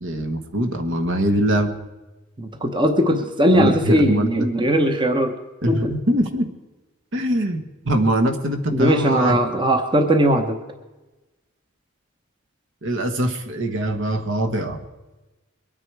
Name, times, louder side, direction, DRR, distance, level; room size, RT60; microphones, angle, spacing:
voice 1, 0.0-1.7 3.5-4.8 5.6-6.5 7.1-9.4 12.8-14.8, right 1 dB, 60° right, 6 dB, 1.4 m, -23 dB
voice 2, 2.4-5.3 5.7-5.9 8.7-10.6, equal, 20° right, 6 dB, 0.9 m, -19 dB
22.0 x 9.8 x 4.7 m, 1.1 s
head